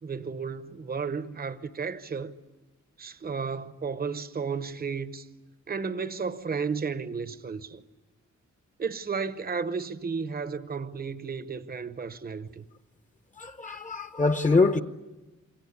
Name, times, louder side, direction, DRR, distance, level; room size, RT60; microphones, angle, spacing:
voice 1, 0.0-2.3 3.0-5.3 5.7-7.8 8.8-12.6, right 5 dB, 30° right, 0.8 m, -33 dB
voice 2, 13.4-14.8, left 3 dB, 25° left, 0.9 m, -24 dB
28.0 x 24.5 x 8.4 m
wide cardioid pair, 160°, 29 cm